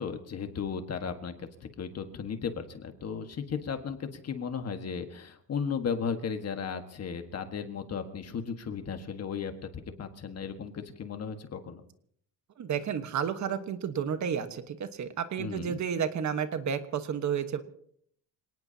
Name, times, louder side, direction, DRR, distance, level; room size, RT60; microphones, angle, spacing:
voice 1, 0.0-11.8 15.4-15.8, left 6 dB, 40° left, 7 dB, 1.6 m, -35 dB
voice 2, 12.6-17.6, right 7 dB, 45° right, 9 dB, 1.3 m, -31 dB
27.0 x 18.5 x 2.8 m, 0.63 s
cardioid pair, 135°, 40 cm